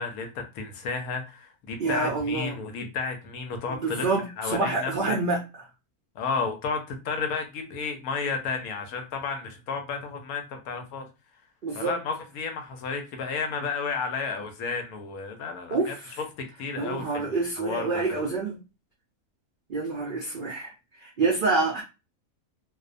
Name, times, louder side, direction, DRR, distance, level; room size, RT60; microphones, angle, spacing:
voice 1, 0.0-4.1 4.4-5.2 6.1-11.1 11.7-15.9 16.6-17.3 17.6-18.2, left 5 dB, 80° left, 5 dB, 1.0 m, -32 dB
voice 2, 1.8-2.6 3.7-5.4 11.6-12.0 15.7-16.2 16.8-18.6 19.7-21.8, right 3 dB, 90° right, -1 dB, 0.4 m, -27 dB
2.5 x 2.1 x 2.4 m, 0.28 s
omnidirectional pair, 1.6 m